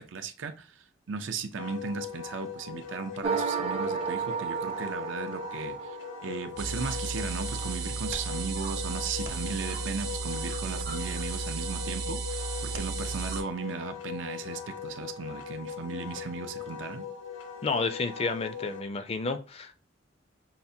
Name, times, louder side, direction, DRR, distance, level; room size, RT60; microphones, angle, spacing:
voice 1, 0.0-6.0 6.2-17.1, right 5 dB, 80° right, 0.5 m, -37 dB
Wind instrument woodwind instrument, 1.6-18.8, left 7 dB, 75° left, 0.7 m, -40 dB
sound 1, 3.2-6.6, right 5 dB, 35° right, 0.4 m, -32 dB
sound 2, 6.6-13.4, right 4 dB, 60° right, 0.9 m, -34 dB
voice 2, 17.6-19.8, left 3 dB, 30° left, 0.4 m, -31 dB
5.7 x 2.1 x 2.7 m
head